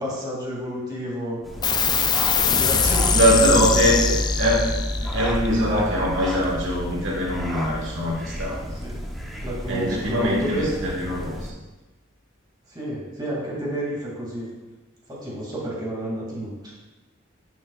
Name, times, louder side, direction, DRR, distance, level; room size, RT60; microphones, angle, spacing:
voice 1, 0.0-1.4 2.6-3.7 5.0-5.2 8.8-9.0 9.4-10.8 12.7-14.5 15.1-16.7, equal, 20° right, -5 dB, 2.5 m, -30 dB
sound 1, 1.4-11.5, equal, ahead, 0.9 m, -34 dB
sound 2, 1.6-8.5, left 4 dB, 20° left, 0.4 m, -24 dB
voice 2, 3.1-4.0 4.4-4.7 5.1-8.6 9.7-11.5, equal, 65° right, -4 dB, 1.6 m, -22 dB
11.0 x 6.0 x 2.5 m, 1.1 s
head